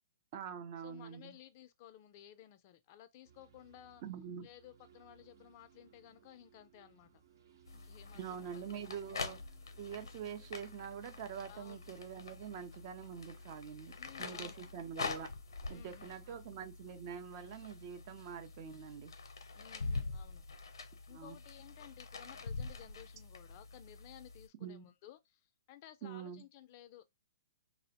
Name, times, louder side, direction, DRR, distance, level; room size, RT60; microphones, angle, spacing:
voice 1, 0.3-1.4 4.0-4.5 8.1-9.4 9.8-15.3 15.7-19.1 21.1-21.4 24.6-24.8 26.0-26.4, right 8 dB, 45° right, 0.5 m, -45 dB
voice 2, 0.8-4.0 4.4-7.1 7.5-8.5 11.5-11.8 14.0-14.6 15.7-16.4 19.5-20.4 21.1-27.0, left 12 dB, 40° left, 0.3 m, -56 dB
sound 1, 3.2-17.2, right 8 dB, 70° right, 0.9 m, -67 dB
sound 2, 7.7-24.5, left 4 dB, 85° left, 0.6 m, -45 dB
2.4 x 2.0 x 2.7 m
hypercardioid pair, 140°, 2 cm